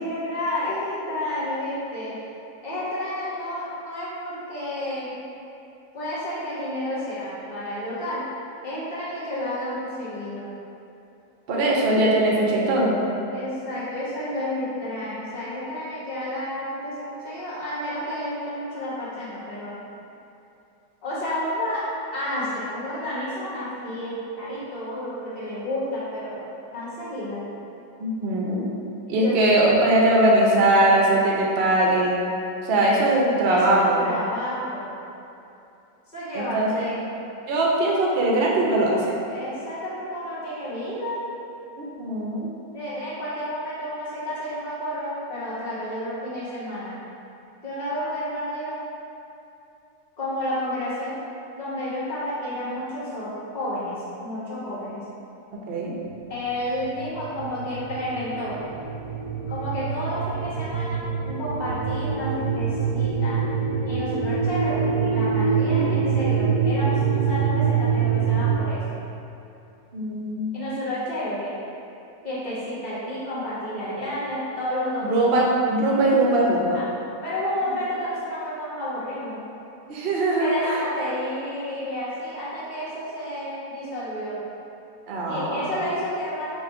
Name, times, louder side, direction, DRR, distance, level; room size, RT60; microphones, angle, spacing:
voice 1, 0.0-2.2 2.6-5.2 5.9-8.2 8.6-10.5 13.3-19.8 21.0-21.8 22.1-26.5 26.7-27.4 29.1-29.4 32.7-33.0 33.3-34.9 36.1-37.3 39.3-41.2 42.7-47.0 47.6-48.8 50.2-51.2 51.5-55.0 56.3-58.6 59.5-63.4 63.8-68.8 70.5-71.5 72.2-75.4 76.7-76.8 77.2-79.4 80.4-84.4 85.3-86.6, left 1 dB, 30° left, -10 dB, 1.2 m, -31 dB
voice 2, 11.5-12.9 28.0-28.7 29.1-32.2 32.6-34.0 36.3-36.9 37.5-39.0 41.8-42.5 55.7-55.9 69.9-70.5 75.0-76.8 79.9-80.8 85.1-85.7, right 1 dB, 75° right, -3 dB, 0.5 m, -21 dB
sound 1, 56.6-68.6, right 6 dB, 90° left, 1.4 m, -25 dB
4.1 x 2.4 x 4.6 m, 2.8 s
omnidirectional pair, 1.9 m